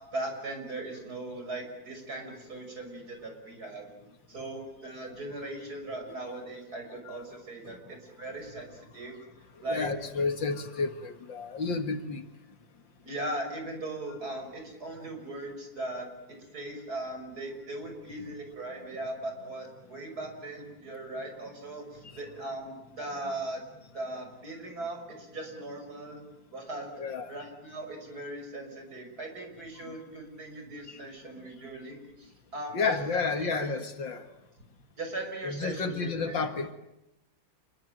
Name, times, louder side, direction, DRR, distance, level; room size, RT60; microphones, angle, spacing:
voice 1, 0.0-4.0 4.3-9.2 9.6-9.9 13.0-23.6 23.9-26.2 26.5-26.9 27.3-33.7 35.0-36.5, right 2 dB, 45° right, 4 dB, 6.3 m, -39 dB
voice 2, 9.7-12.2 27.0-27.3 29.8-30.0 30.9-31.0 32.7-34.2 35.4-36.7, left 4 dB, 65° left, 8 dB, 2.5 m, -31 dB
28.5 x 22.0 x 9.1 m, 0.84 s
omnidirectional pair, 2.3 m